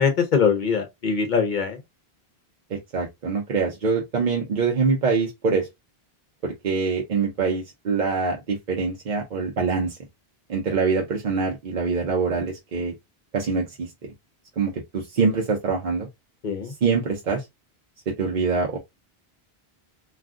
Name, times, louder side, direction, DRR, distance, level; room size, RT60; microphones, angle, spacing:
voice 1, 0.0-1.8 16.4-16.7, left 6 dB, 50° left, 0.7 m, -22 dB
voice 2, 2.7-5.7 6.4-10.0 10.5-12.9 13.3-13.9 14.6-16.1 16.8-17.4 18.1-18.8, right 4 dB, 50° right, 0.7 m, -24 dB
2.4 x 2.2 x 3.6 m
omnidirectional pair, 1.1 m